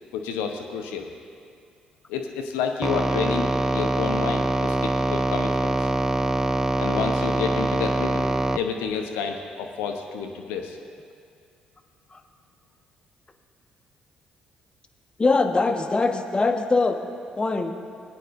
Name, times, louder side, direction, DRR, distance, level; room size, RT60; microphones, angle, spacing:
voice 1, 0.1-1.1 2.1-5.9 6.8-10.8, left 6 dB, 70° left, 4 dB, 0.9 m, -30 dB
sound 1, 2.8-8.6, right 2 dB, 15° right, 0.4 m, -24 dB
voice 2, 15.2-17.0 17.4-17.7, left 3 dB, 25° left, 5 dB, 1.0 m, -22 dB
20.0 x 9.1 x 2.6 m, 2.3 s
figure-of-eight pair, 45°, 4 cm